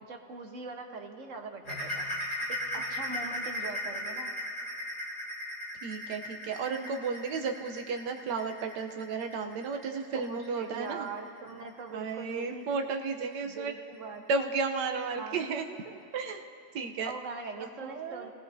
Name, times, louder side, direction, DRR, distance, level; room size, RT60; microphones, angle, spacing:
voice 1, 0.1-2.1 2.5-4.3 10.1-12.7 13.4-14.2 15.2-15.4 17.0-18.3, right 4 dB, 55° right, 3 dB, 1.4 m, -41 dB
sound 1, 1.6-12.9 13.3-13.5 13.9-14.0 14.6-14.7, left 1 dB, 70° left, 4.6 m, -37 dB
voice 2, 5.8-11.1 11.9-13.7 14.3-16.4 16.7-17.1 17.6-18.3, right 4 dB, 90° right, 4 dB, 1.4 m, -33 dB
28.0 x 18.5 x 2.7 m, 2.5 s
omnidirectional pair, 1.8 m